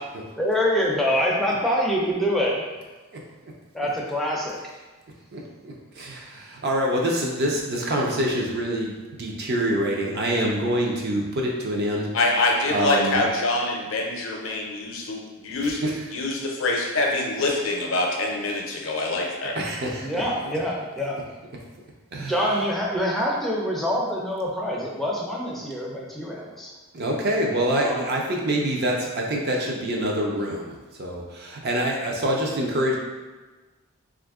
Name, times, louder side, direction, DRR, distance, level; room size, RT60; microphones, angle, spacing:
voice 1, 0.4-2.6 3.7-4.6 20.0-21.3 22.2-26.7 27.7-28.1, equal, ahead, -4 dB, 0.4 m, -25 dB
voice 2, 3.1-3.5 5.3-12.1 12.7-13.3 15.6-16.1 19.5-20.2 22.1-22.3 26.9-33.0, right 1 dB, 50° right, -1 dB, 0.5 m, -26 dB
voice 3, 12.1-15.8 16.1-19.6, left 2 dB, 65° left, 0 dB, 0.5 m, -25 dB
2.7 x 2.5 x 3.5 m, 1.3 s
head